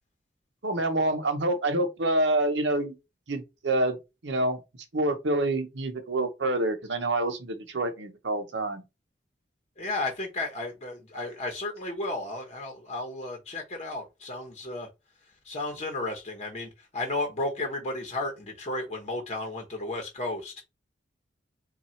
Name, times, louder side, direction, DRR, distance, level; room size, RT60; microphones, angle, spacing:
voice 1, 0.6-2.9 3.3-4.0 4.2-4.6 4.9-8.8, right 2 dB, 70° right, 0.9 m, -27 dB
voice 2, 9.8-14.9 15.4-20.5, left 2 dB, 35° left, 0.9 m, -33 dB
3.6 x 2.4 x 4.3 m
head